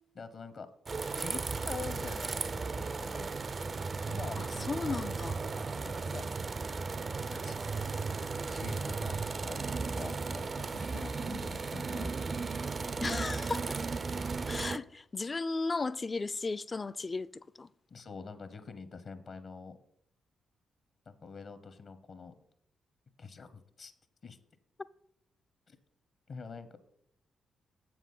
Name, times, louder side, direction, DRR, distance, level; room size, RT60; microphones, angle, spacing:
voice 1, 0.2-0.7 1.1-3.3 4.1-6.2 7.4-7.9 8.5-12.5 17.9-19.8 21.1-22.3 23.2-23.9 24.2-24.4 25.7-25.8 26.3-26.8, left 4 dB, 60° left, 0.9 m, -46 dB
sound 1, 0.8-14.8, right 4 dB, 45° right, 0.4 m, -35 dB
voice 2, 4.4-5.4 11.3-11.4 13.0-13.8 14.5-17.7, left 3 dB, 35° left, 0.4 m, -35 dB
7.4 x 6.1 x 5.5 m
hypercardioid pair, 40°, 0 cm